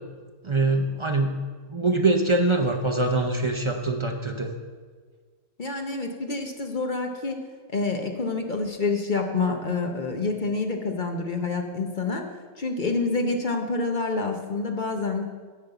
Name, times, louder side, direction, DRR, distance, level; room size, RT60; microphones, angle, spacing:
voice 1, 0.4-1.3 1.7-4.5, right 2 dB, 40° right, 3 dB, 0.4 m, -23 dB
voice 2, 5.6-7.4 7.7-12.3 12.6-15.2, left 3 dB, 45° left, 4 dB, 0.7 m, -27 dB
9.3 x 5.2 x 8.0 m, 1.5 s
omnidirectional pair, 1.6 m